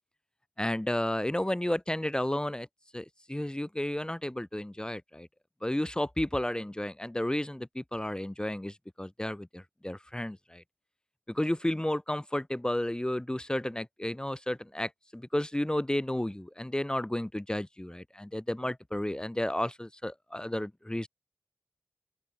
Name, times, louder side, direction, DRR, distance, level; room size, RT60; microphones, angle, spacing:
voice 1, 0.6-2.7 2.9-5.3 5.6-10.6 11.3-21.1, left 1 dB, 15° left, 1.2 m, -32 dB
open air
wide cardioid pair, 60°, 5 cm